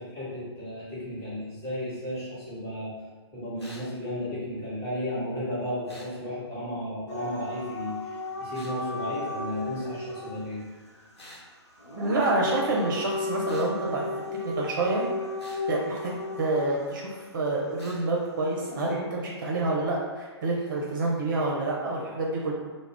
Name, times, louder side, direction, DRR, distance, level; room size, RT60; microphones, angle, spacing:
voice 1, 0.0-2.9 3.3-10.6, left 1 dB, 20° left, -10 dB, 1.2 m, -34 dB
sound 1, 3.6-3.9 5.9-6.1 8.5-8.8 11.1-11.5 13.4-13.7 15.4-15.6 17.8-18.0, left 1 dB, 70° left, 1.0 m, -47 dB
Dog / Siren, 7.1-10.4 11.8-17.0 18.6-18.9, left 2 dB, 90° left, 0.6 m, -34 dB
voice 2, 12.0-14.1 14.4-15.0 15.7-16.1 16.4-22.5, right 2 dB, 45° right, -3 dB, 0.5 m, -28 dB
2.3 x 2.1 x 3.4 m, 1.4 s
figure-of-eight pair, 125°, 14 cm